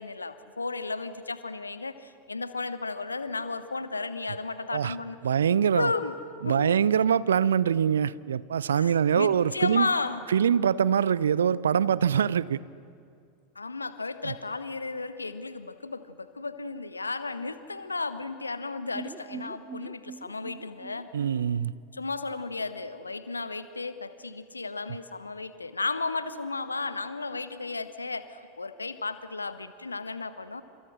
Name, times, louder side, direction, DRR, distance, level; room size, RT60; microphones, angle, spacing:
voice 1, 0.0-6.1 6.4-6.8 8.7-10.2 13.5-21.1 21.9-30.6, left 3 dB, 80° left, 12 dB, 1.3 m, -34 dB
voice 2, 5.2-5.9 6.4-9.9 10.3-12.6 14.2-14.3 21.1-21.7, right 8 dB, 70° right, 21 dB, 0.6 m, -24 dB
sound 1, 18.9-22.8 23.1-23.2 23.5-23.6, right 5 dB, 20° right, 0.9 m, -44 dB
29.5 x 27.0 x 6.4 m, 2.4 s
figure-of-eight pair, 85°, 0 cm